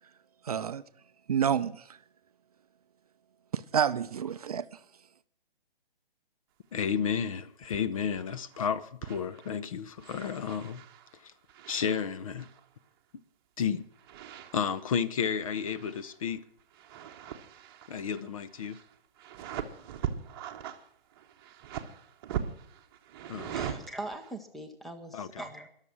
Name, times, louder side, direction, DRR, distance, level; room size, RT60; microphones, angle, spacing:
voice 1, 0.4-0.8 1.3-2.0 3.5-4.7, right 8 dB, 40° right, 0.6 m, -29 dB
voice 2, 6.7-10.8 11.2-11.3 11.7-12.5 13.6-13.9 14.5-16.4 17.9-18.8 23.3-23.8 25.1-25.3, left 7 dB, 35° left, 0.7 m, -32 dB
sound 1, 7.6-7.9 8.2-8.6 9.0-9.6 10.0-12.7 13.9-15.0 15.3-16.3 16.6-24.3, right 9 dB, 25° right, 1.0 m, -41 dB
voice 3, 23.5-25.7, right 1 dB, ahead, 0.7 m, -41 dB
21.5 x 7.4 x 6.1 m
figure-of-eight pair, 135°, 30 cm